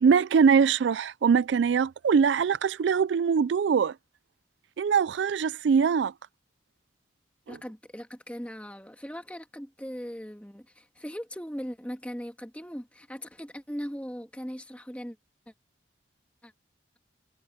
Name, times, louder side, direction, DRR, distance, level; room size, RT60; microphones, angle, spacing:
voice 1, 0.0-3.9 4.8-6.1 7.5-7.6, right 6 dB, 75° right, 0.4 m, -22 dB
voice 2, 7.5-15.2 16.4-16.5, equal, 5° left, 1.7 m, -39 dB
head